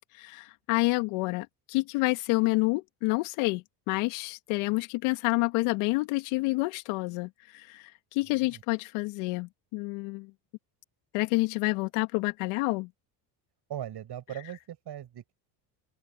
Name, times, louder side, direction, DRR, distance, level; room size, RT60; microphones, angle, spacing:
voice 1, 0.1-10.3 11.1-12.9, left 24 dB, 75° left, 2.3 m, -28 dB
voice 2, 13.7-15.3, right 11 dB, 50° right, 7.5 m, -39 dB
open air
hypercardioid pair, 75°, 50 cm